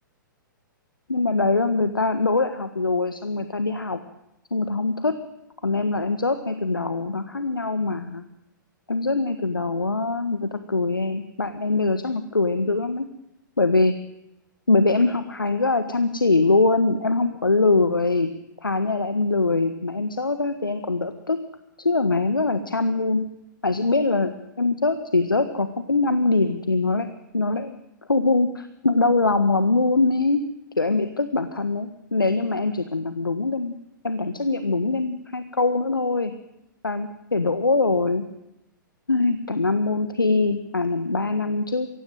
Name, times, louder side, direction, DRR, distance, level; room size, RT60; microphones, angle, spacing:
voice 1, 1.1-4.0 4.5-5.2 5.6-8.2 8.9-13.1 13.6-13.9 14.7-18.3 18.6-21.4 21.8-23.3 23.6-27.1 27.3-27.8 28.1-30.4 30.8-33.8 34.0-36.3 36.8-38.2 39.1-41.9, left 3 dB, 85° left, 10 dB, 1.5 m, -23 dB
24.0 x 16.5 x 9.2 m, 0.88 s
figure-of-eight pair, 110°, 11 cm